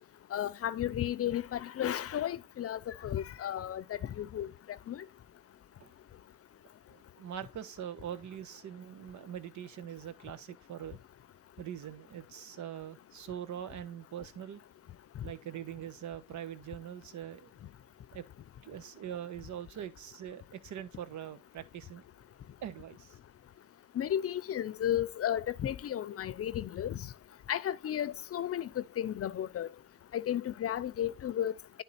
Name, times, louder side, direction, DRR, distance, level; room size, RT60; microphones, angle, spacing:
voice 1, 0.3-4.5 4.9-5.0 23.9-27.1 27.5-29.7 30.1-31.5, left 11 dB, 50° left, 0.6 m, -33 dB
voice 2, 6.9-11.0 11.6-14.6 15.2-17.5 18.1-18.2 18.6-22.0 22.6-23.2, right 10 dB, 70° right, 1.2 m, -43 dB
11.0 x 3.8 x 4.2 m
cardioid pair, 90°, 30 cm